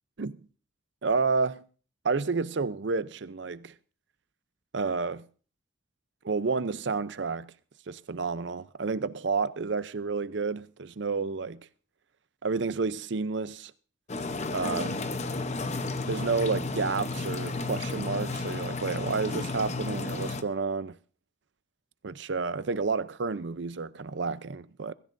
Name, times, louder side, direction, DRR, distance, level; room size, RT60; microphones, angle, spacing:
voice 1, 1.0-1.6 2.0-3.7 4.7-5.2 6.2-7.5 7.9-11.6 12.4-13.7 14.5-14.9 16.1-20.9 22.0-24.9, right 4 dB, 60° right, 0.6 m, -30 dB
sound 1, 14.1-20.4, left 3 dB, 35° left, 0.8 m, -32 dB
22.5 x 14.0 x 2.6 m
head